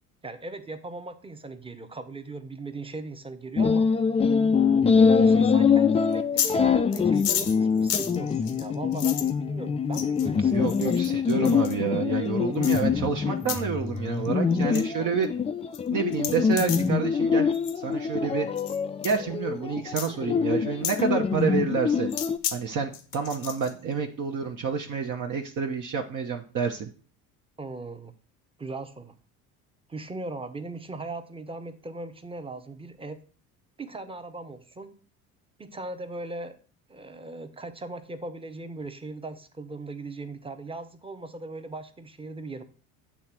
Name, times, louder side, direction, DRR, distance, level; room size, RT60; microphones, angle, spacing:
voice 1, 0.2-3.9 4.9-11.0 27.6-28.1 28.6-29.2 29.9-33.2 33.8-34.9 35.6-36.6 36.9-42.6, right 3 dB, 10° right, 10 dB, 0.9 m, -39 dB
sound 1, 3.6-22.4, left 6 dB, 15° left, 0.4 m, -24 dB
voice 2, 5.0-5.4 10.5-15.3 15.9-17.5 17.8-18.5 19.0-22.1 22.5-26.9, right 6 dB, 45° right, 3 dB, 0.9 m, -29 dB
sound 2, 6.1-6.6 6.9-9.3 9.9-10.3 10.7-11.7 12.6-12.8 13.4-13.6 14.0-14.3 14.5-14.8 15.2-15.3 15.7-15.8 16.1-16.9 17.5-17.8 18.6-18.8 19.0-19.2 20.0-20.1 20.8-21.0 22.1-22.6 22.9-23.7, left 10 dB, 85° left, 1.0 m, -32 dB
8.5 x 3.3 x 5.9 m, 0.40 s
hypercardioid pair, 70°, 44 cm